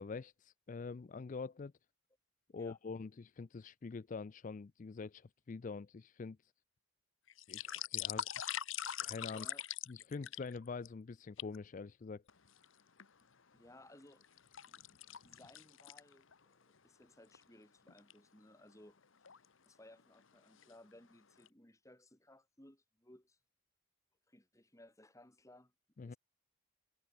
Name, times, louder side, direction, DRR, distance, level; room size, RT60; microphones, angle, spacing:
voice 1, 0.0-1.7 2.5-6.5 7.5-8.3 9.0-9.5 9.9-12.2 26.0-26.1, left 4 dB, 35° left, 0.4 m, -45 dB
sound 1, 7.3-10.9 11.4-11.6 12.3-13.1 13.6-16.4 16.8-16.9 17.3-17.4 17.9-18.1 19.0-19.5 20.0-20.2 20.5-21.1 21.5-21.6, left 10 dB, 60° left, 1.0 m, -43 dB
voice 2, 9.3-9.7 13.5-14.2 14.6-19.0 19.6-23.4 24.3-26.2, left 1 dB, 15° left, 3.0 m, -61 dB
head